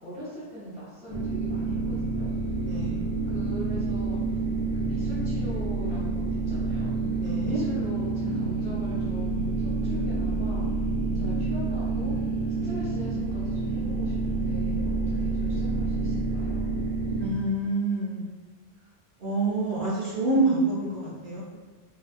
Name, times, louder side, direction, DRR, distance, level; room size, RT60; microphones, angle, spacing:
voice 1, 0.0-2.3 3.2-4.2 4.7-6.9 7.4-10.6 11.1-12.2 12.6-16.7, right 1 dB, 10° right, -10 dB, 0.4 m, -40 dB
sound 1, 1.1-17.3, right 3 dB, 45° left, 0.6 m, -28 dB
voice 2, 2.6-3.0 7.2-7.6 17.2-18.3 19.2-21.4, right 2 dB, 50° right, -8 dB, 0.8 m, -27 dB
2.7 x 2.2 x 2.5 m, 1.3 s
omnidirectional pair, 1.2 m